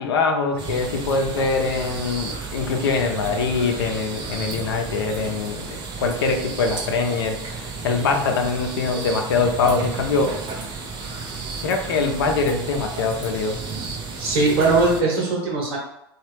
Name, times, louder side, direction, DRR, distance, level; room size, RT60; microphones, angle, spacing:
voice 1, 0.0-10.4 11.6-13.6, left 4 dB, 80° left, 4 dB, 0.6 m, -23 dB
sound 1, 0.6-15.0, right 4 dB, 40° right, 0.7 m, -33 dB
voice 2, 14.2-15.8, right 3 dB, 70° right, -3 dB, 1.0 m, -20 dB
3.0 x 2.4 x 3.2 m, 0.83 s
hypercardioid pair, 90°, 13 cm